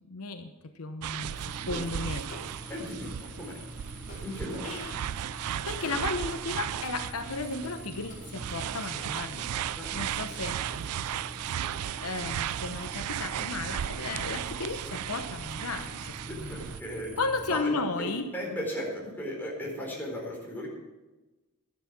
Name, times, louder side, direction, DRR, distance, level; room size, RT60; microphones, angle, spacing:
voice 1, 0.0-2.3 4.6-5.0 5.6-9.4 9.9-10.6 12.0-16.6 17.1-18.3, left 3 dB, 70° left, 7 dB, 1.0 m, -34 dB
sound 1, 1.0-16.8, right 10 dB, 85° right, 0.4 m, -36 dB
sound 2, 1.2-17.6, right 1 dB, 5° right, 0.9 m, -45 dB
sound 3, 2.3-3.1 4.1-4.7 5.8-6.5 7.6-15.3, left 1 dB, 40° left, 5.1 m, -50 dB
voice 2, 2.7-3.6 4.2-4.8 9.8-9.9 16.3-17.1 17.5-20.7, equal, 10° left, -3 dB, 4.2 m, -36 dB
12.0 x 11.0 x 6.1 m, 1.1 s
head